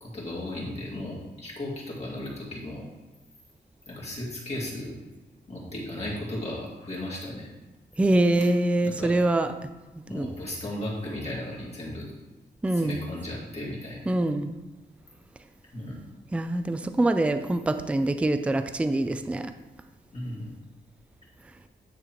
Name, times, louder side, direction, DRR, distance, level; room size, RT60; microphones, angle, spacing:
voice 1, 0.0-2.9 3.9-5.0 5.5-7.5 8.8-9.1 10.0-12.1 12.8-14.1 15.7-16.0 20.1-20.5, left 1 dB, 35° left, -5 dB, 2.3 m, -35 dB
voice 2, 8.0-9.5 10.1-10.3 12.6-13.1 14.1-14.5 16.3-19.5, right 1 dB, 5° right, 9 dB, 0.3 m, -24 dB
9.8 x 6.3 x 3.0 m, 1.1 s
wide cardioid pair, 150°, 18 cm